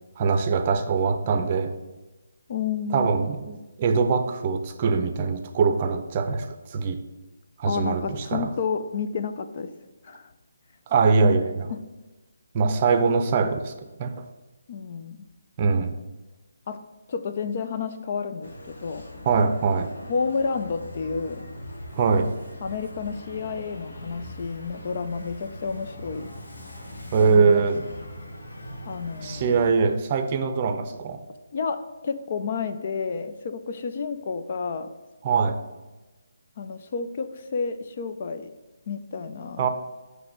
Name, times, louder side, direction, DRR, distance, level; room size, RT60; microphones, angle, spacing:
voice 1, 0.2-1.7 2.9-7.0 7.6-8.5 10.9-11.7 12.5-13.7 14.0-14.1 15.6-16.0 19.3-19.9 21.9-22.3 27.1-27.8 29.2-31.2 35.2-35.6 39.6-39.7, right 5 dB, 35° right, 7 dB, 0.6 m, -22 dB
voice 2, 2.5-3.1 7.7-9.7 10.0-10.3 11.7-11.8 14.7-15.2 16.7-16.8 17.1-19.1 20.1-21.5 22.6-26.3 27.2-27.6 28.9-29.6 31.5-34.9 36.6-38.5 38.9-39.7, left 5 dB, 45° left, 9 dB, 0.5 m, -30 dB
sound 1, 18.4-29.7, left 1 dB, 70° left, 1.2 m, -41 dB
7.0 x 3.3 x 6.1 m, 1.1 s
figure-of-eight pair, 150°, 0 cm